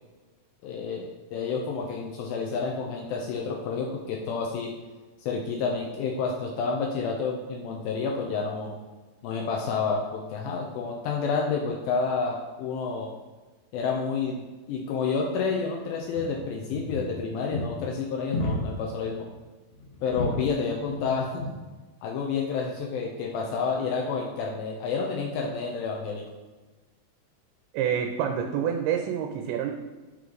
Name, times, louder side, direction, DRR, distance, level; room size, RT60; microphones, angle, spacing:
voice 1, 0.6-4.7 5.2-8.7 9.2-13.1 13.7-14.4 14.7-19.3 20.0-21.4 22.0-26.3, left 5 dB, 80° left, 0 dB, 2.3 m, -29 dB
sound 1, 16.0-16.3 16.7-17.2 17.5-17.7 18.3-18.8 19.1-19.3 19.7-20.4 20.8-21.1 21.4-21.6 22.3-22.5, left 1 dB, 60° left, 2.2 m, -32 dB
voice 2, 27.7-29.7, right 8 dB, 90° right, 4 dB, 2.5 m, -27 dB
8.3 x 3.1 x 3.8 m, 1.3 s
omnidirectional pair, 4.3 m